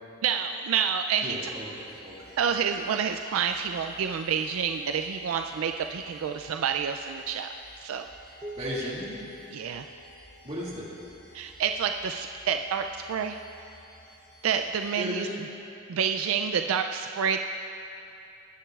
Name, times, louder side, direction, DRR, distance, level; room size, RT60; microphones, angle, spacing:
voice 1, 0.2-1.4 2.4-7.5 7.8-8.1 9.5-9.9 11.3-13.4 14.4-15.3 15.9-17.4, right 7 dB, 75° right, 6 dB, 0.4 m, -28 dB
sound 1, 1.2-14.9, equal, 20° left, 2.2 m, -54 dB
voice 2, 1.2-2.4 8.6-9.2 10.4-10.9 15.0-15.4, equal, 30° right, -6 dB, 2.2 m, -35 dB
sound 2, 8.4-11.0, left 1 dB, 15° right, 0.4 m, -46 dB
19.0 x 10.0 x 2.4 m, 2.7 s
head